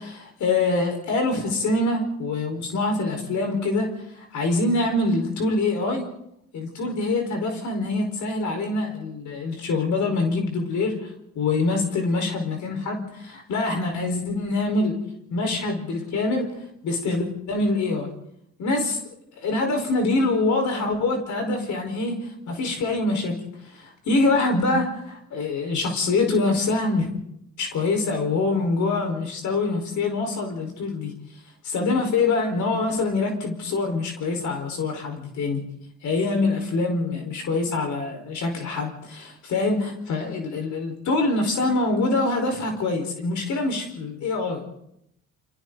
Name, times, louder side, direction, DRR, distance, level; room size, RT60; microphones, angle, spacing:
voice 1, 0.0-3.9 4.2-6.0 6.5-10.9 11.3-15.0 15.3-16.5 16.8-18.1 18.6-19.0 19.4-22.2 22.5-23.3 23.7-27.1 27.6-31.1 31.6-35.6 36.0-44.6, left 3 dB, 70° left, 3 dB, 4.8 m, -25 dB
29.5 x 23.5 x 4.0 m, 0.79 s
cardioid pair, 90°, 30 cm